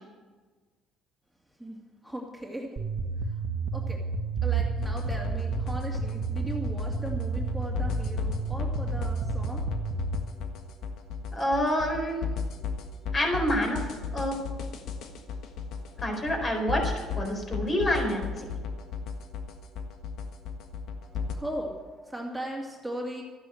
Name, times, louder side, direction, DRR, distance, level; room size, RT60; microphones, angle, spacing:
voice 1, 1.6-2.7 3.2-3.4 3.7-4.0 4.4-9.6 15.7-16.0 21.0-23.2, right 1 dB, ahead, -2 dB, 2.5 m, -38 dB
sound 1, 2.8-10.2, right 4 dB, 40° right, 1.4 m, -31 dB
sound 2, 4.8-21.4, left 5 dB, 70° left, 1.5 m, -35 dB
voice 2, 11.3-12.2 13.1-13.9 14.1-14.4 16.0-18.5, equal, 30° left, 2 dB, 4.3 m, -27 dB
13.5 x 9.8 x 7.8 m, 1.4 s
cardioid pair, 110°, 0 cm